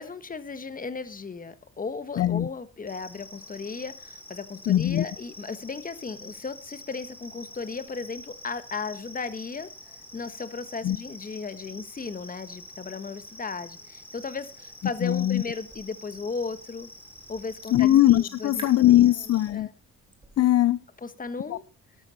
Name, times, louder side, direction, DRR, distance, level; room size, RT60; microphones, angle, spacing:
voice 1, 0.0-9.7 10.1-16.9 17.3-17.9 18.1-18.7 19.5-19.7 20.4-20.5 21.0-21.6, left 4 dB, 30° left, 1.4 m, -35 dB
voice 2, 2.2-2.5 4.7-5.0 10.8-11.0 15.0-15.4 17.7-19.7 20.4-20.8 21.5-21.6, left 13 dB, 55° left, 0.6 m, -20 dB
sound 1, 2.9-19.5, left 1 dB, 5° left, 3.4 m, -47 dB
sound 2, 14.7-20.4, right 2 dB, 15° right, 3.5 m, -52 dB
12.5 x 11.5 x 4.3 m
cardioid pair, 90°, 30 cm